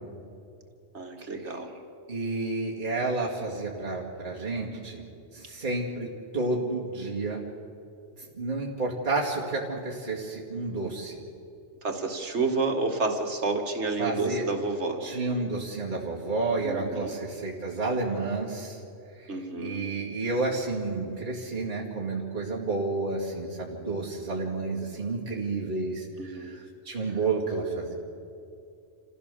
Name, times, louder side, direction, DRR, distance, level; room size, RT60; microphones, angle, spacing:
voice 1, 0.9-1.7 11.8-15.0 16.6-17.1 19.3-19.9 26.2-26.6, right 3 dB, 65° right, 3 dB, 2.2 m, -30 dB
voice 2, 2.1-5.1 5.3-6.1 6.3-7.4 8.2-11.2 14.0-14.4 15.0-18.8 19.2-27.9, right 3 dB, 40° right, -4 dB, 2.4 m, -31 dB
28.5 x 15.0 x 6.9 m, 2.6 s
omnidirectional pair, 1.2 m